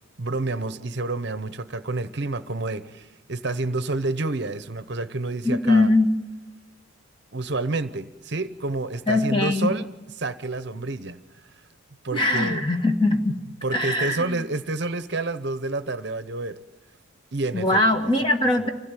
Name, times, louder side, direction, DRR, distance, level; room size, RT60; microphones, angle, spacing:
voice 1, 0.2-5.9 7.3-9.9 10.2-11.5 12.0-12.6 13.6-16.6 17.3-18.1 18.6-18.7, right 2 dB, 55° right, 12 dB, 0.8 m, -29 dB
voice 2, 5.4-6.1 9.1-9.7 12.1-13.4 13.7-14.4 17.5-18.7, left 2 dB, 25° left, 4 dB, 1.7 m, -21 dB
25.5 x 16.5 x 9.0 m, 1.2 s
head